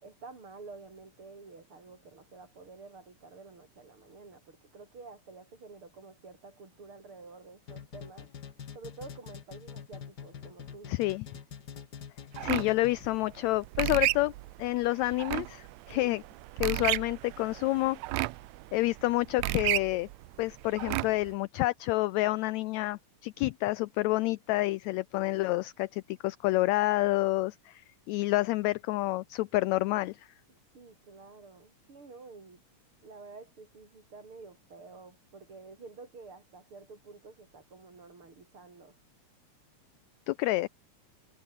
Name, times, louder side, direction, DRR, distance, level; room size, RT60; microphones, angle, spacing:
voice 1, 0.0-8.3 8.7-11.0 15.9-16.1 30.7-32.6 33.0-39.0, right 4 dB, 40° right, 5.5 m, -50 dB
sound 1, 7.7-13.2, left 7 dB, 45° left, 1.4 m, -45 dB
voice 2, 10.9-11.3 12.4-14.3 14.6-16.2 16.6-18.0 18.7-20.1 20.4-30.3 40.3-40.7, left 19 dB, 80° left, 1.6 m, -29 dB
sound 2, 12.4-21.3, right 19 dB, 80° right, 1.6 m, -33 dB
omnidirectional pair, 3.7 m